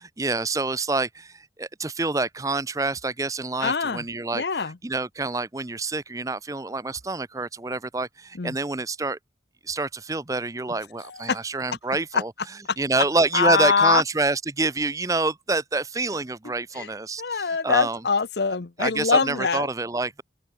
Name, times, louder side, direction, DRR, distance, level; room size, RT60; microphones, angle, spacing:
voice 1, 0.0-4.4 4.8-9.2 9.7-12.3 12.8-18.0 18.8-20.2, right 3 dB, 20° right, 0.6 m, -27 dB
voice 2, 3.6-4.0 4.3-4.8 8.4-8.6 11.0-11.4 12.1-12.2 13.3-14.0 16.8-16.9 17.2-19.7, left 5 dB, 65° left, 0.8 m, -23 dB
open air
head